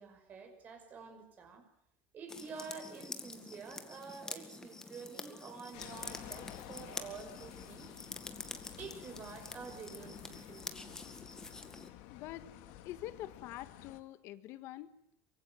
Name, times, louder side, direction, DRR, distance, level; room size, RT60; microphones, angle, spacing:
voice 1, 0.0-1.6 2.1-7.9 8.5-11.0, right 5 dB, 30° right, 6 dB, 5.6 m, -49 dB
sound 1, 2.3-11.9, left 3 dB, 10° left, 2.0 m, -47 dB
sound 2, 5.7-14.0, left 13 dB, 70° left, 2.4 m, -52 dB
voice 2, 12.1-12.5 12.8-14.9, left 14 dB, 50° left, 13 dB, 1.6 m, -45 dB
24.5 x 23.0 x 9.4 m, 0.73 s
cardioid pair, 160°, 6 cm